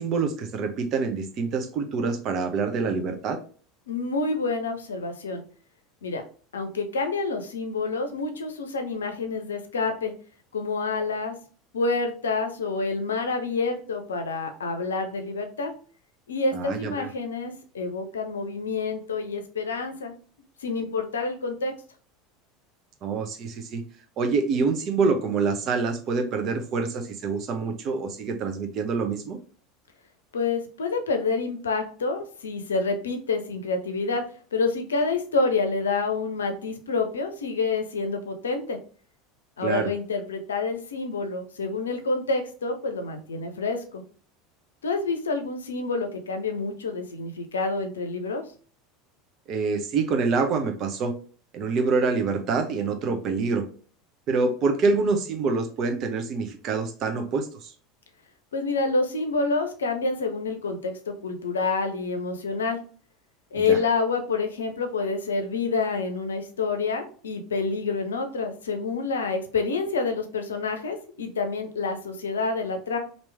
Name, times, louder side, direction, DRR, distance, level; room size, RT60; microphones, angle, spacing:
voice 1, 0.0-3.4 16.5-17.1 23.0-23.8 24.2-29.4 39.6-39.9 49.5-51.1 51.5-53.6 54.3-57.7 63.6-63.8, right 4 dB, 45° right, 6 dB, 0.7 m, -26 dB
voice 2, 3.9-5.4 6.0-6.2 6.5-10.1 10.5-11.4 11.7-15.7 16.3-20.1 20.6-21.7 30.3-34.2 34.5-38.8 39.6-44.0 44.8-48.4 58.5-62.8 63.5-73.0, left 3 dB, 80° left, 6 dB, 0.6 m, -28 dB
3.0 x 2.7 x 3.2 m, 0.43 s
figure-of-eight pair, 75°, 0 cm